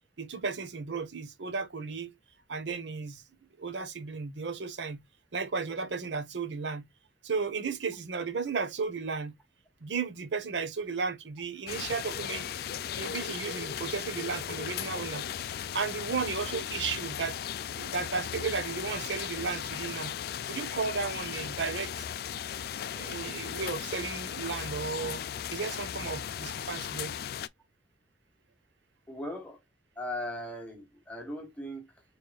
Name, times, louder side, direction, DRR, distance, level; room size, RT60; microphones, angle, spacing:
voice 1, 0.2-2.1 2.5-3.2 3.6-5.0 5.3-6.9 7.2-9.3 9.8-12.5 13.0-15.2 15.7-17.4 17.7-20.1 20.5-22.1 22.9-25.2 25.5-27.1, right 5 dB, 75° right, 0.9 m, -34 dB
sound 1, 11.7-27.5, left 9 dB, 55° left, 0.3 m, -37 dB
voice 2, 29.1-29.6 29.9-32.0, left 1 dB, 10° left, 1.2 m, -39 dB
4.6 x 3.3 x 2.3 m
head